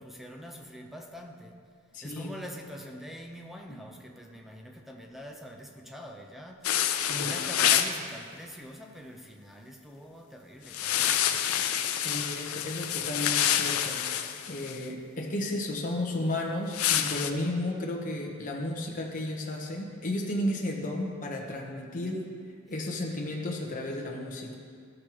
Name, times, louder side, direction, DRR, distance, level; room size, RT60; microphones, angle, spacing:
voice 1, 0.0-1.6 2.0-11.4, equal, ahead, 2 dB, 0.5 m, -44 dB
voice 2, 1.9-2.3 3.7-3.8 7.1-7.4 12.0-22.2 22.7-24.5, left 1 dB, 35° left, -1 dB, 1.0 m, -33 dB
sound 1, 6.6-8.0 10.7-14.8 16.7-17.3, left 10 dB, 80° left, 0.5 m, -27 dB
13.5 x 6.4 x 3.0 m, 2.1 s
head